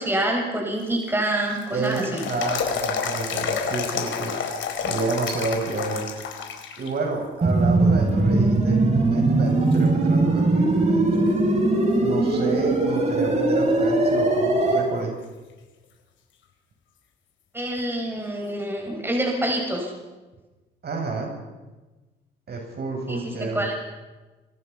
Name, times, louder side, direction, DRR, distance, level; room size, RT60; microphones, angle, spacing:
voice 1, 0.0-2.3 17.5-19.9 23.1-23.7, right 1 dB, 10° right, 1 dB, 6.6 m, -26 dB
sound 1, 0.8-6.9 7.3-7.4 8.1-8.6 9.1-9.2 9.7-10.9 11.3-11.4 14.7-14.8 17.8-17.9, left 6 dB, 75° left, 4.4 m, -30 dB
voice 2, 1.7-4.3 4.8-6.1 6.8-11.3 12.0-15.1 20.8-21.3 22.5-23.7, right 3 dB, 55° right, 1 dB, 7.7 m, -30 dB
sound 2, 7.4-14.8, right 2 dB, 35° right, 7.1 m, -20 dB
28.5 x 24.0 x 5.7 m, 1.2 s
cardioid pair, 90°, 20 cm